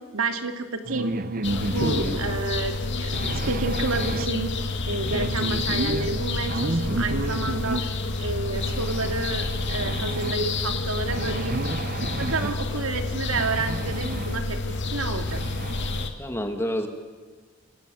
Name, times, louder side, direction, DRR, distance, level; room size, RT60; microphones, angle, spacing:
voice 1, 0.1-1.2 1.7-4.5 4.9-7.9 8.2-11.6 12.2-15.4, right 3 dB, 70° right, 6 dB, 2.3 m, -30 dB
sound 1, 0.8-2.4 3.1-4.3 5.0-7.8 8.6-10.3 11.1-12.6 13.3-14.4 14.8-14.9 15.3-16.1, right 2 dB, 45° right, 0.8 m, -32 dB
sound 2, 1.4-16.1, left 3 dB, 60° left, 2.3 m, -29 dB
voice 2, 1.8-2.2 16.2-16.9, equal, 10° left, 5 dB, 1.9 m, -28 dB
28.0 x 17.0 x 9.3 m, 1.4 s
head